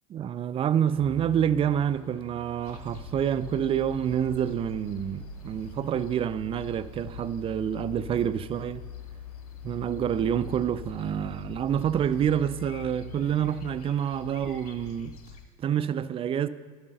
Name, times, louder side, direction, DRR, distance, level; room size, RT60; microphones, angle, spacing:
voice 1, 0.1-8.9 9.6-15.1 15.6-16.5, right 9 dB, 30° right, 0.4 m, -27 dB
sound 1, 1.0-13.0, equal, 10° left, 2.3 m, -52 dB
sound 2, 2.6-15.4, left 6 dB, 85° left, 1.2 m, -43 dB
12.0 x 7.8 x 4.1 m
hypercardioid pair, 95°, 19 cm